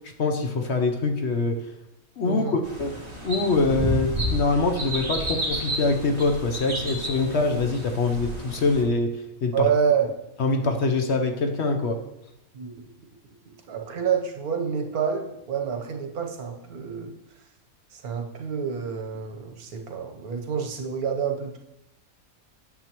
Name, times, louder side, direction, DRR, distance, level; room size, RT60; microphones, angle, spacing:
voice 1, 0.2-1.6 2.2-3.0 3.2-9.7 10.4-12.0, left 3 dB, 55° left, 4 dB, 0.9 m, -24 dB
voice 2, 2.3-2.6 9.5-10.1 12.5-12.7 13.7-17.1 17.9-21.6, right 7 dB, 80° right, 3 dB, 1.5 m, -27 dB
sound 1, 2.6-8.8, right 1 dB, 25° right, 1.9 m, -31 dB
9.6 x 7.4 x 3.0 m, 0.88 s
omnidirectional pair, 1.6 m